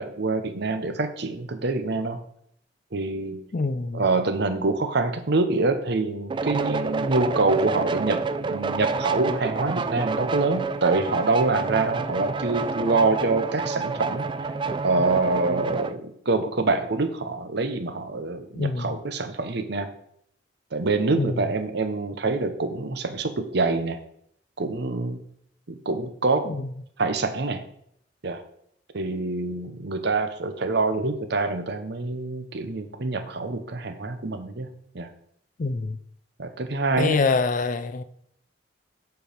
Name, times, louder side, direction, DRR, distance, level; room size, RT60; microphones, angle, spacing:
voice 1, 0.0-2.2 2.9-3.4 3.9-14.3 14.8-19.9 20.7-24.0 24.6-25.2 25.7-26.5 27.0-27.6 28.2-28.4 28.9-34.7 34.9-35.1 36.4-37.2, right 3 dB, 65° right, 0.8 m, -25 dB
voice 2, 3.5-4.1 18.5-19.0 21.1-21.5 26.4-26.7 35.6-36.0 37.0-38.0, left 4 dB, 45° left, 0.5 m, -25 dB
sound 1, 6.3-15.9, right 4 dB, 25° right, 0.3 m, -28 dB
8.0 x 4.7 x 5.1 m
head